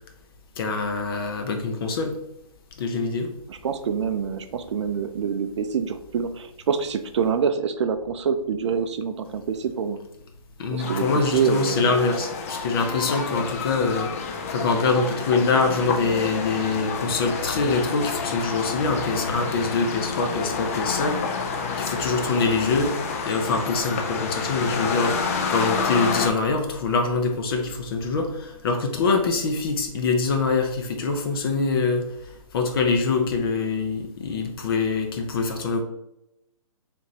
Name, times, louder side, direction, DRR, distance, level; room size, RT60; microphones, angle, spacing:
voice 1, 0.6-2.2 2.8-3.3 10.6-21.3 21.8-23.0 23.2-35.8, left 4 dB, 40° left, 4 dB, 0.7 m, -24 dB
voice 2, 3.5-10.0 10.7-12.0, right 6 dB, 55° right, 9 dB, 0.4 m, -26 dB
sound 1, 10.8-26.3, left 5 dB, 25° left, 0.3 m, -29 dB
4.7 x 3.4 x 2.8 m, 0.84 s
hypercardioid pair, 155°, 18 cm